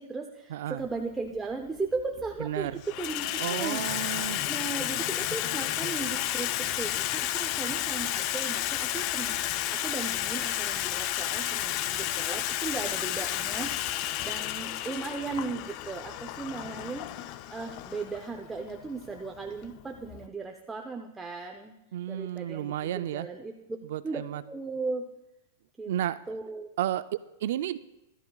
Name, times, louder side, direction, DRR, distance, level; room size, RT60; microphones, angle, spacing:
voice 1, 0.0-4.1 4.5-9.4 9.7-21.7 22.1-23.5 24.0-25.0 25.8-25.9 26.3-26.7, right 4 dB, 10° right, 2 dB, 0.6 m, -37 dB
voice 2, 0.5-0.8 2.4-2.8 3.4-4.4 21.9-23.3 23.9-24.4 25.9-26.2 26.8-27.8, right 11 dB, 65° right, 14 dB, 0.4 m, -32 dB
Water tap faucet / Sink (filling or washing), 0.9-1.0 2.0-2.4 2.7-20.3, left 14 dB, 40° left, 0.4 m, -32 dB
20.0 x 13.0 x 2.3 m, 0.93 s
supercardioid pair, 155°, 0 cm